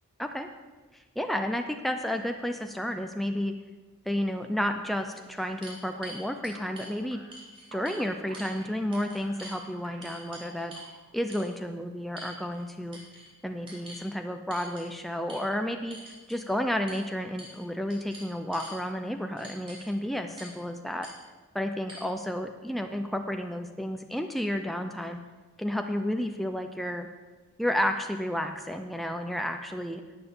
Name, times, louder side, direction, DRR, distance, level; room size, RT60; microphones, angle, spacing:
voice 1, 0.9-3.5 4.1-7.2 7.7-10.7 11.1-13.0 13.4-21.1 21.5-25.2 25.6-27.1 27.6-30.0, equal, ahead, 5 dB, 0.5 m, -31 dB
sound 1, 4.4-4.5 5.0-6.9 7.3-8.0 8.3-8.6 8.9-9.6 10.0-10.9 11.3-11.5 12.2-12.6 12.9-13.3 13.7-14.0 14.5-14.9 15.3-15.4 15.9-16.4 16.9-17.0 17.4-17.6 17.9-18.8 19.4-19.9 20.4-20.6 21.0-21.1 21.9-22.0, right 1 dB, 25° right, 3.0 m, -46 dB
sound 2, 5.9-11.2, right 2 dB, 70° right, 1.4 m, -51 dB
11.0 x 8.9 x 6.9 m, 1.3 s
head